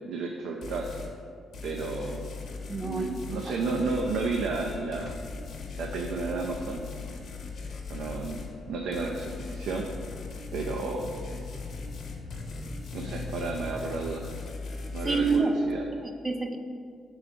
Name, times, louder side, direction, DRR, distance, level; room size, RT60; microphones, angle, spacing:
voice 1, 0.0-1.0 1.6-2.3 2.8-5.1 5.8-6.9 7.9-8.4 8.7-9.9 10.5-11.1 12.9-14.4 14.9-15.9, right 3 dB, 75° right, 1 dB, 0.5 m, -32 dB
sound 1, 0.6-1.1 1.5-8.5 8.9-15.4, left 4 dB, 70° left, 0.8 m, -39 dB
voice 2, 2.7-3.1 15.0-15.5 16.0-16.6, right 4 dB, 25° right, 4 dB, 0.5 m, -27 dB
sound 2, 3.8-14.1, left 3 dB, 45° left, 0.4 m, -45 dB
5.9 x 3.9 x 4.4 m, 2.3 s
cardioid pair, 90°, 0 cm